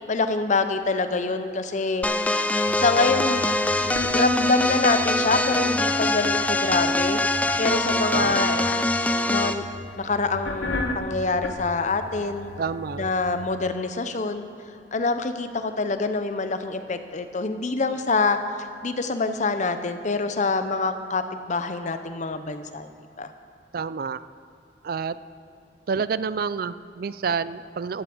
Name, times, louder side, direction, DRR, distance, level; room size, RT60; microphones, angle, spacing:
voice 1, 0.1-2.1 2.8-3.5 3.9-7.2 7.6-8.6 9.3-9.6 10.0-12.5 13.0-14.5 14.9-22.9 23.2-23.3, left 3 dB, 45° left, 9 dB, 0.7 m, -25 dB
sound 1, 2.0-9.6, left 2 dB, 10° left, 0.4 m, -23 dB
sound 2, 2.7-13.6, left 1 dB, 90° left, 1.1 m, -37 dB
voice 2, 8.1-8.6 12.6-13.0 23.7-24.2 24.8-25.2 25.9-28.0, right 5 dB, 55° right, 15 dB, 0.4 m, -28 dB
12.0 x 8.0 x 7.8 m, 2.6 s
head